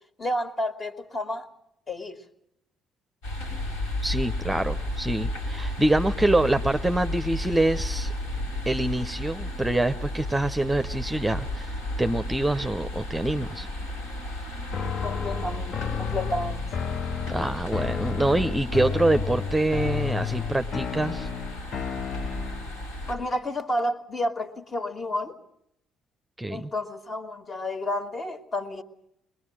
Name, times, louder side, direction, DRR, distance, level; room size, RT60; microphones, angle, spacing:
voice 1, 0.2-1.5 1.9-2.2 15.0-16.6 23.1-25.4 26.5-28.8, left 1 dB, 40° left, 7 dB, 2.3 m, -30 dB
sound 1, 3.2-23.1, left 1 dB, 80° left, 6.1 m, -33 dB
voice 2, 4.0-8.1 8.7-13.7 17.3-21.3 26.4-26.7, right 1 dB, 10° right, 8 dB, 0.8 m, -25 dB
sound 2, 14.7-22.8, left 7 dB, 55° left, 0.9 m, -32 dB
22.0 x 22.0 x 7.5 m, 0.76 s
hypercardioid pair, 50°, 0 cm